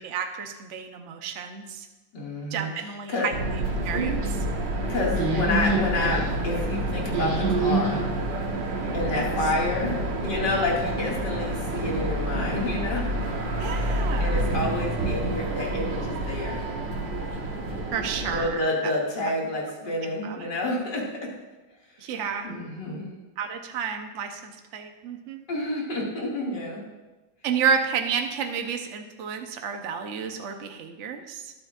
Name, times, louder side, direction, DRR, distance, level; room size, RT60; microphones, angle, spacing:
voice 1, 0.0-1.9 2.5-4.5 9.1-9.3 13.6-14.4 17.9-18.9 20.2-20.5 22.0-22.5 23.4-25.4 27.4-31.5, right 6 dB, 50° right, 5 dB, 1.0 m, -31 dB
voice 2, 2.1-2.7 3.1-3.3 4.9-8.0 8.9-9.9 10.2-13.0 13.7-13.9 14.2-16.6 18.3-21.1 22.0-22.1 22.4-23.1 25.5-26.8, left 2 dB, 65° left, -3 dB, 2.9 m, -29 dB
sound 1, 3.3-18.5, right 1 dB, 70° right, 2.1 m, -27 dB
21.5 x 7.9 x 2.5 m, 1.1 s
omnidirectional pair, 2.1 m